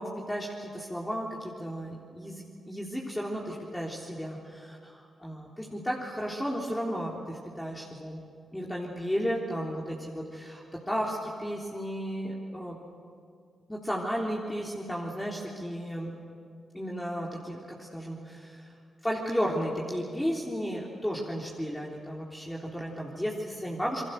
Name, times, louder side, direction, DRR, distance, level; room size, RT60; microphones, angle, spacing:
voice 1, 0.0-8.2 8.5-12.8 13.7-16.1 16.7-18.7 19.0-24.0, equal, 10° left, -3 dB, 3.6 m, -34 dB
27.5 x 22.5 x 6.6 m, 2.3 s
hypercardioid pair, 40°, 0 cm